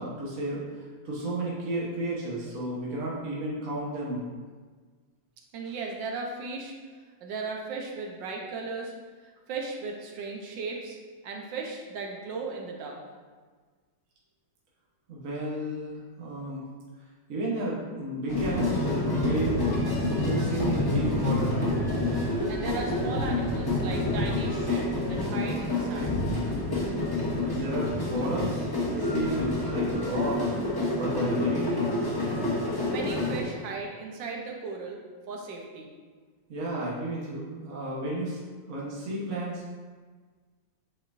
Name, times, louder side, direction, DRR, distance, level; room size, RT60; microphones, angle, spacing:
voice 1, 0.0-4.3 5.6-5.7 15.1-16.6 17.3-19.7 20.2-21.8 27.2-30.5 30.9-32.1 36.5-38.4 38.7-39.8, right 1 dB, 50° right, -5 dB, 1.4 m, -33 dB
voice 2, 5.5-6.7 7.2-8.9 9.5-11.0 11.2-13.0 22.5-26.2 32.6-35.0 35.3-35.9, right 4 dB, 85° right, 0 dB, 1.6 m, -36 dB
sound 1, 18.3-33.4, left 2 dB, 25° left, 0.5 m, -28 dB
8.4 x 4.3 x 2.6 m, 1.5 s
omnidirectional pair, 1.9 m